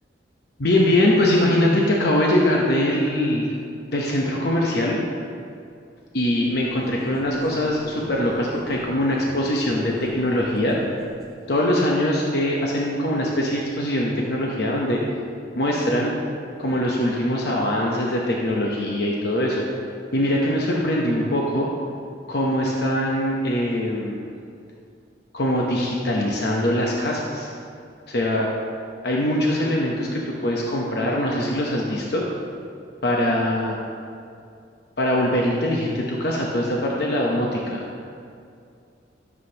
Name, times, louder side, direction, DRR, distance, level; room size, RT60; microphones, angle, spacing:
voice 1, 0.6-3.5 3.9-5.0 6.1-10.8 11.5-15.0 15.5-16.1 16.6-19.6 20.1-21.7 22.3-24.2 25.3-27.5 28.1-28.5 29.0-32.2 33.0-33.8 35.0-37.9, left 1 dB, 60° left, -2 dB, 0.9 m, -22 dB
sound 1, 6.5-11.6, equal, 5° left, 1.1 m, -39 dB
13.0 x 7.5 x 2.9 m, 2.4 s
head